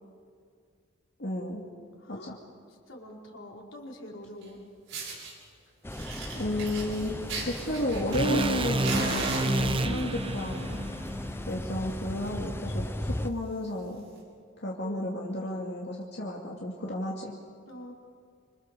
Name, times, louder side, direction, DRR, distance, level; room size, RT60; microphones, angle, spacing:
voice 1, 1.2-1.6 2.1-2.4 6.3-7.1 7.4-10.8 11.5-14.1 14.6-17.3, left 1 dB, 55° left, -3 dB, 2.6 m, -32 dB
voice 2, 2.0-2.3 2.9-4.6 14.8-15.0 17.7-17.9, left 1 dB, 85° left, -2 dB, 5.0 m, -44 dB
Fire, 4.4-4.5 4.9-5.3 5.9-8.5 8.8-10.0 10.8-11.1 11.4-11.5 11.9-12.0 12.2-12.5 13.0-13.1 14.0-14.1, right 3 dB, 75° right, 7.5 m, -37 dB
sound 1, 5.8-13.3, left 1 dB, 10° left, 0.7 m, -37 dB
sound 2, 8.1-12.3, right 1 dB, 25° right, 0.9 m, -30 dB
27.0 x 26.5 x 7.0 m, 2.2 s
head